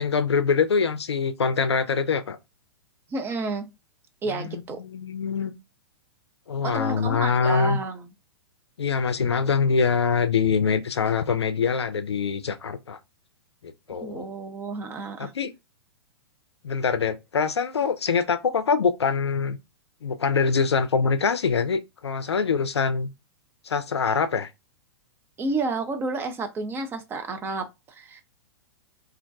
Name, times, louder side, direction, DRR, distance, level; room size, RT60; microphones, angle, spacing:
voice 1, 0.0-2.4 4.3-5.5 6.5-7.8 8.8-13.0 13.6-14.3 15.2-15.5 16.6-19.6 20.0-23.1 23.6-24.5, left 5 dB, 80° left, 0.4 m, -24 dB
voice 2, 3.1-3.7 4.2-4.8 6.6-8.1 14.0-15.3 25.4-28.2, right 3 dB, 15° right, 0.4 m, -30 dB
2.4 x 2.1 x 2.4 m
figure-of-eight pair, 110°, 14 cm